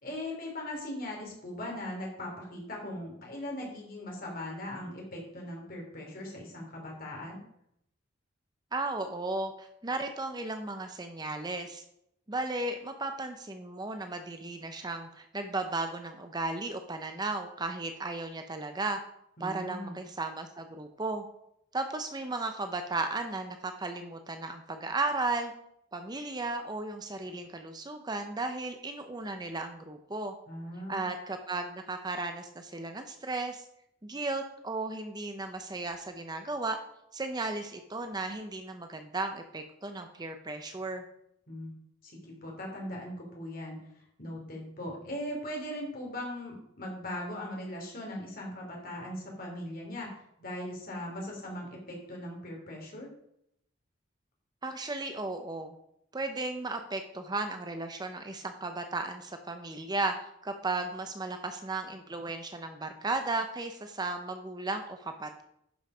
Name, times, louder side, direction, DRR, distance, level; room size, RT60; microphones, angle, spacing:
voice 1, 0.0-7.4 19.4-19.9 30.5-31.1 41.5-41.7 42.0-43.8 44.2-53.1, left 1 dB, 45° left, -1 dB, 3.2 m, -39 dB
voice 2, 8.7-11.8 12.3-19.0 19.4-21.2 21.7-25.5 25.9-30.3 30.9-33.6 34.0-36.8 37.1-41.0 54.6-55.7 56.1-60.1 60.4-65.4, right 2 dB, 20° right, 6 dB, 0.6 m, -35 dB
11.0 x 5.7 x 5.0 m, 0.75 s
head